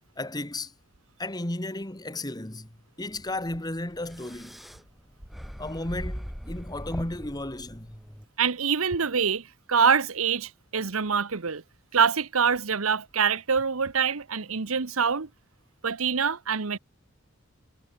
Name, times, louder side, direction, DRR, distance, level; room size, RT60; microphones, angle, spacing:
voice 1, 0.2-0.7 1.2-4.6 5.6-8.0, left 1 dB, 20° left, 1.7 m, -34 dB
sound 1, 3.1-8.3, equal, ahead, 1.4 m, -40 dB
voice 2, 8.4-11.6 11.9-15.3 15.8-16.8, right 6 dB, 80° right, 1.1 m, -25 dB
head